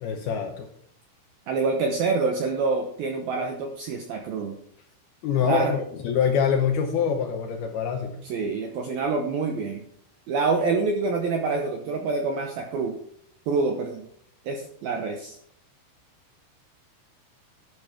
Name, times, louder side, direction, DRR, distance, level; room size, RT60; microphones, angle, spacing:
voice 1, 0.0-0.7 5.2-8.3, left 7 dB, 75° left, 3 dB, 2.4 m, -25 dB
voice 2, 1.5-4.6 5.4-5.7 8.2-9.8 10.3-12.9 13.5-14.0 14.5-15.4, right 4 dB, 75° right, 4 dB, 2.2 m, -26 dB
12.0 x 11.5 x 3.7 m, 0.67 s
omnidirectional pair, 5.7 m